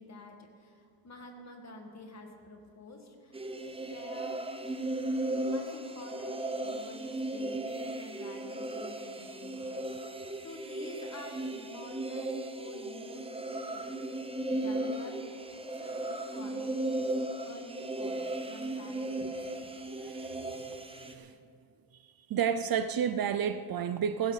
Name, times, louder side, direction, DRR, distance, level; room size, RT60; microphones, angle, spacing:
voice 1, 0.0-3.4 3.8-4.4 5.4-13.9 14.5-15.2 15.8-19.7, left 2 dB, 35° left, 3 dB, 2.1 m, -48 dB
sound 1, 3.3-21.1, right 1 dB, 10° right, 0.8 m, -36 dB
voice 2, 20.0-20.4 21.0-21.3 22.3-24.3, right 8 dB, 50° right, 11 dB, 0.6 m, -31 dB
16.5 x 16.0 x 4.1 m, 2.3 s
cardioid pair, 140°, 46 cm